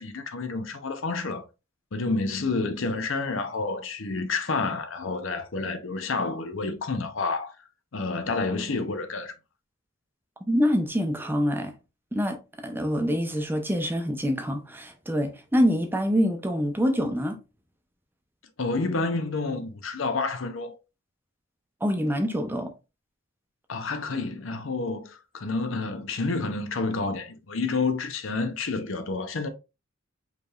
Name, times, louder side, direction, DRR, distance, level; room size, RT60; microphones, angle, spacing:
voice 1, 0.0-1.4 1.9-7.5 7.9-9.3 18.6-20.7 23.7-29.5, left 3 dB, 75° left, 0.7 m, -29 dB
voice 2, 10.5-11.7 12.1-12.4 12.6-17.4 21.8-22.7, equal, 10° right, 0.7 m, -25 dB
4.9 x 3.3 x 2.4 m
head